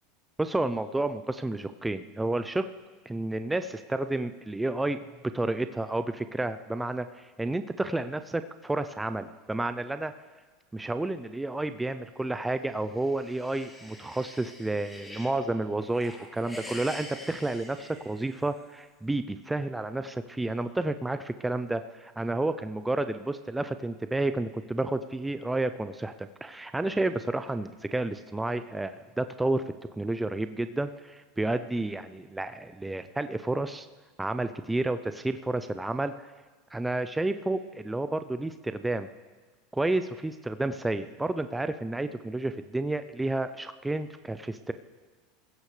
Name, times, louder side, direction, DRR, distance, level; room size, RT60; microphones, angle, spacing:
voice 1, 0.4-2.6 3.1-5.0 5.3-10.1 10.7-29.6 29.9-33.9 34.2-36.3 36.7-39.1 39.7-44.7, right 2 dB, 10° right, 10 dB, 0.5 m, -31 dB
sound 1, 12.7-15.4 15.8-18.7, left 1 dB, 10° left, 2.9 m, -45 dB
24.0 x 15.5 x 3.3 m, 1.3 s
hypercardioid pair, 100°, 0 cm